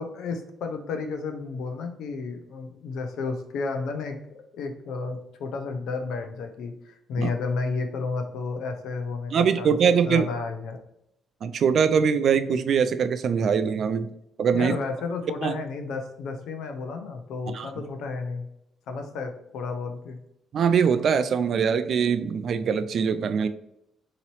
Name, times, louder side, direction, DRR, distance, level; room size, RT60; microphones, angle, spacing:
voice 1, 0.0-9.8 10.0-10.8 14.5-18.5 18.9-20.2, left 4 dB, 85° left, 5 dB, 0.6 m, -32 dB
voice 2, 9.3-10.3 11.4-14.1 14.4-14.7 15.4-15.5 17.5-17.7 20.5-23.5, right 6 dB, 60° right, 11 dB, 0.3 m, -22 dB
3.9 x 2.9 x 3.0 m, 0.80 s
cardioid pair, 90°, 0 cm